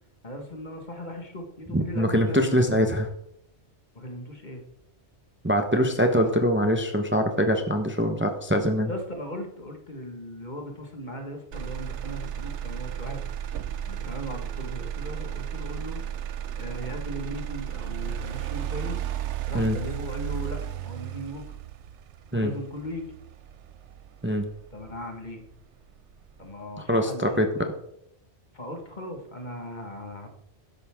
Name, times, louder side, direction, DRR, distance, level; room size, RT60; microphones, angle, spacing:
voice 1, 0.2-2.9 3.9-4.6 8.8-13.4 13.9-16.0 16.6-19.0 19.5-21.4 22.3-23.1 24.7-25.4 26.4-27.7 28.5-30.3, equal, 40° left, 4 dB, 1.9 m, -38 dB
voice 2, 1.7-3.1 5.4-8.9 19.5-19.8 22.3-22.5 24.2-24.5 26.9-27.5, equal, 10° right, 5 dB, 1.0 m, -23 dB
Motor vehicle (road), 11.5-25.5 26.0-26.5, right 10 dB, 90° right, 1.0 m, -34 dB
12.5 x 11.0 x 3.7 m, 0.74 s
omnidirectional pair, 1.2 m